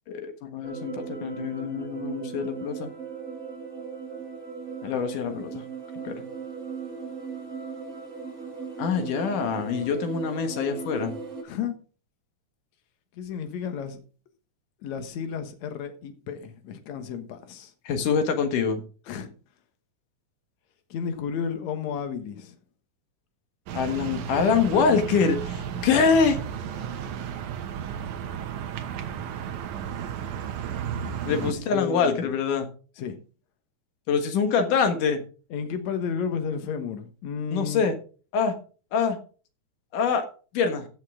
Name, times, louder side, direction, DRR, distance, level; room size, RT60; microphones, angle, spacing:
voice 1, 0.1-2.9 4.8-5.6 6.0-6.2 8.8-11.1 17.8-18.8 23.7-26.4 31.3-32.7 34.1-35.2 37.5-38.0 38.3-38.6 38.9-39.2 39.9-40.3 40.5-40.9, left 5 dB, 85° left, 3.1 m, -25 dB
sound 1, 0.6-11.4, right 5 dB, 30° right, 2.5 m, -37 dB
voice 2, 11.4-11.8 13.1-14.0 14.8-17.7 19.1-19.3 20.9-22.6 31.3-32.3 33.0-33.2 35.5-37.9, left 6 dB, 65° left, 2.6 m, -32 dB
sound 2, 23.7-31.5, right 8 dB, 75° right, 2.5 m, -33 dB
15.0 x 7.5 x 3.8 m
omnidirectional pair, 3.6 m